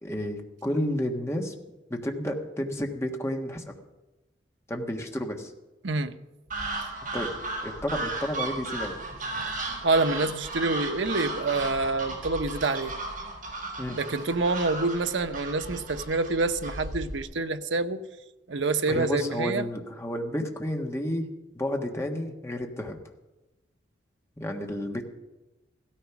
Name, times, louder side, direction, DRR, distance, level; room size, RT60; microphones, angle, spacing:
voice 1, 0.0-1.5 1.9-3.7 4.7-5.5 7.1-7.3 7.6-9.0 13.8-14.0 18.9-21.3 21.5-23.0 24.4-25.0, left 1 dB, 15° left, 1.5 m, -31 dB
sound 1, 6.5-17.2, right 2 dB, 45° right, 5.7 m, -35 dB
voice 2, 9.8-12.9 14.0-18.0 18.5-19.7, right 3 dB, 80° right, 0.8 m, -27 dB
16.0 x 13.5 x 5.9 m
head